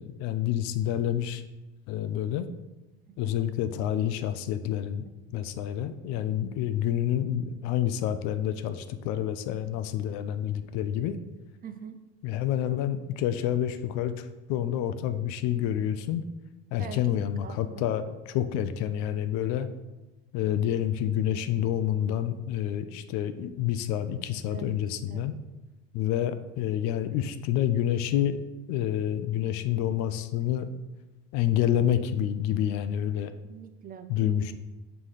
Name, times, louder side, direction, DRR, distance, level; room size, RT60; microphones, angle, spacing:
voice 1, 0.0-1.4 1.9-2.5 3.2-5.1 5.3-11.2 12.2-16.2 16.7-18.0 18.3-19.7 20.3-25.3 25.9-28.4 28.7-30.7 31.3-33.3 34.1-34.5, left 11 dB, 60° left, 11 dB, 0.6 m, -28 dB
voice 2, 11.6-12.0 12.6-12.8 16.8-17.9 24.5-24.8 25.1-25.3 33.4-34.4, right 7 dB, 30° right, 9 dB, 0.4 m, -44 dB
5.7 x 4.0 x 4.9 m, 1.1 s
supercardioid pair, 105°, 31 cm